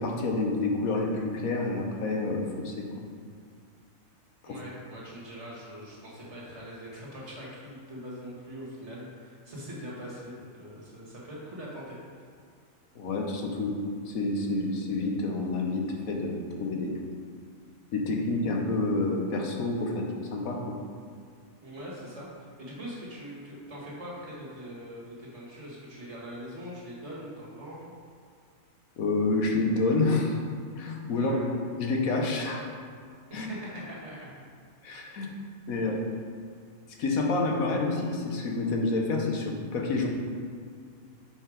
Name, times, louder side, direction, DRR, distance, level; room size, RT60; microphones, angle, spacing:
voice 1, 0.0-2.9 4.4-4.6 13.0-17.0 17.9-20.8 29.0-30.4 30.8-31.3 31.8-32.7 33.3-33.5 34.8-35.3 35.7-36.0 37.0-40.1, left 3 dB, 85° left, 1 dB, 1.4 m, -28 dB
voice 2, 4.4-12.2 21.6-27.9 31.1-31.4 33.3-34.3, equal, 55° right, -6 dB, 2.2 m, -42 dB
6.7 x 4.7 x 5.0 m, 2.2 s
omnidirectional pair, 1.4 m